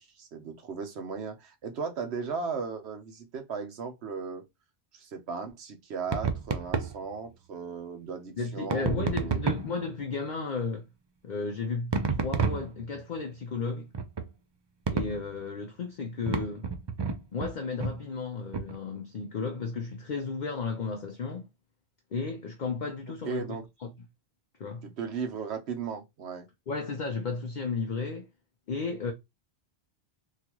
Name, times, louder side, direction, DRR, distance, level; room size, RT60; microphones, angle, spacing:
voice 1, 0.0-4.5 4.9-9.4 23.3-23.6 24.8-26.5, right 5 dB, 75° right, 1.1 m, -36 dB
sound 1, 6.1-7.0 8.7-9.8 11.9-13.0 13.9-14.3 14.9-15.3 16.3-17.5 17.8-18.0 18.5-18.8, right 5 dB, 45° right, 0.3 m, -30 dB
voice 2, 8.4-10.9 11.2-13.9 14.9-16.7 17.3-21.5 22.1-23.9 24.6-24.9 26.7-28.3 28.7-29.1, left 4 dB, 50° left, 0.6 m, -34 dB
3.8 x 2.4 x 2.9 m
omnidirectional pair, 1.1 m